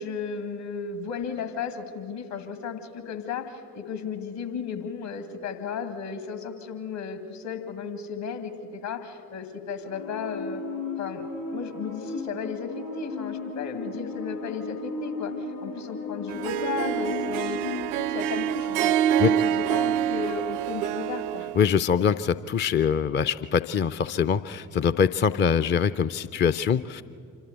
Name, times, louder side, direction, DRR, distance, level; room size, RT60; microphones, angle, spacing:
voice 1, 0.0-10.6 11.0-17.6 18.1-21.5, left 6 dB, 60° left, 7 dB, 2.2 m, -34 dB
sound 1, 9.8-17.9, left 3 dB, 80° left, 5.8 m, -35 dB
Harp, 16.3-21.6, right 10 dB, 65° right, 0.5 m, -26 dB
voice 2, 21.6-27.0, left 7 dB, 25° left, 12 dB, 0.5 m, -23 dB
26.5 x 12.5 x 8.0 m, 2.5 s
figure-of-eight pair, 40°, 47 cm